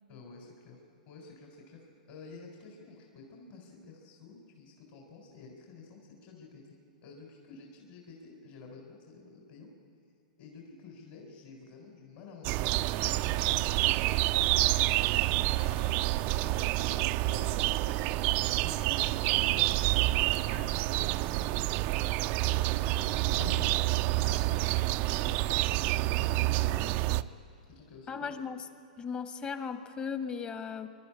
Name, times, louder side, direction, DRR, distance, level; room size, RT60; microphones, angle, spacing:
voice 1, 0.1-0.8 1.1-9.7 10.4-14.8 15.5-17.9 18.5-24.5 25.2-25.6 26.1-27.3 27.7-28.3, left 4 dB, 50° left, -1 dB, 4.0 m, -51 dB
sound 1, 12.4-27.2, right 18 dB, 40° right, 0.5 m, -28 dB
sound 2, 23.3-27.9 28.3-28.4, left 2 dB, 90° left, 5.4 m, -48 dB
voice 2, 28.1-28.6 29.0-30.9, left 6 dB, 25° left, 9 dB, 1.3 m, -36 dB
23.5 x 12.0 x 9.9 m, 2.5 s
hypercardioid pair, 120°, 4 cm